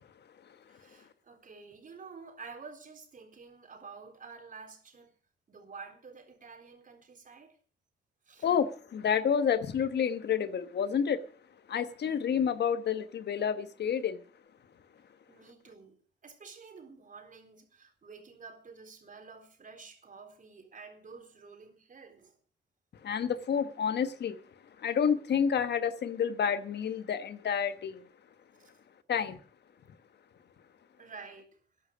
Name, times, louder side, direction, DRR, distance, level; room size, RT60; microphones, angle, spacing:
voice 1, 0.7-5.2 5.5-7.6 8.3-8.5 15.3-16.0 16.2-22.4 28.5-28.8 31.0-31.6, right 5 dB, 45° right, 4.0 m, -50 dB
voice 2, 8.4-11.2 11.7-14.2 23.0-24.4 24.8-28.0 29.1-29.4, left 7 dB, 70° left, 1.2 m, -29 dB
13.5 x 10.5 x 6.2 m
cardioid pair, 115°, 18 cm